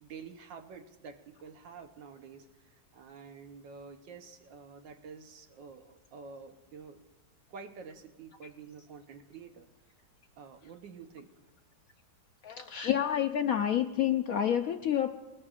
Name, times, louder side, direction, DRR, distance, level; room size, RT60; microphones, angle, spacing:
voice 1, 0.0-7.0 7.5-9.7 10.4-11.3, right 5 dB, 80° right, 6 dB, 1.6 m, -49 dB
voice 2, 12.4-15.1, left 10 dB, 70° left, 6 dB, 0.8 m, -28 dB
20.0 x 20.0 x 2.4 m, 1.1 s
omnidirectional pair, 2.0 m